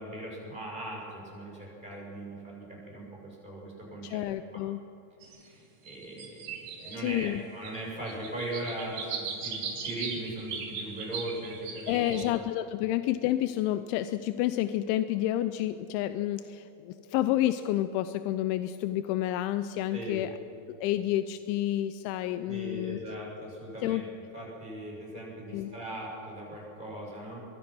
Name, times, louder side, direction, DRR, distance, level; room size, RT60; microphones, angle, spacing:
voice 1, 0.0-4.2 4.5-4.6 5.3-12.4 19.9-20.3 22.5-24.1 24.3-27.4, right 1 dB, 10° right, -3 dB, 7.1 m, -39 dB
voice 2, 4.0-4.8 7.0-7.4 11.9-20.4 20.8-23.0 23.8-24.0 25.5-25.7, left 13 dB, 90° left, 11 dB, 3.0 m, -29 dB
sound 1, 5.2-5.4 5.9-7.3 7.6-7.7 8.1-12.3, right 6 dB, 70° right, 4.4 m, -38 dB
24.5 x 23.0 x 6.2 m, 3.0 s
omnidirectional pair, 5.3 m